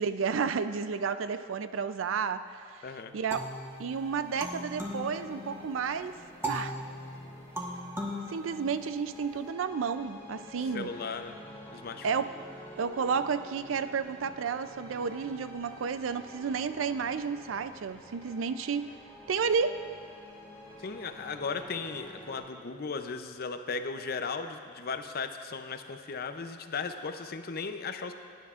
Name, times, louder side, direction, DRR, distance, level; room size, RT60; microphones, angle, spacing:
voice 1, 0.0-2.8 3.1-3.5 3.8-6.2 6.5-6.7 8.3-10.9 12.0-12.3 12.8-18.9 19.3-19.8, right 6 dB, 85° right, 12 dB, 0.4 m, -31 dB
voice 2, 2.8-3.2 10.7-11.4 11.7-12.2 20.8-28.1, left 4 dB, 50° left, 8 dB, 0.6 m, -36 dB
sound 1, 3.1-22.4, left 1 dB, 10° left, 2.1 m, -50 dB
sound 2, 3.3-5.8 6.4-9.2, equal, 15° right, 1.1 m, -38 dB
17.5 x 10.0 x 2.5 m, 2.2 s
head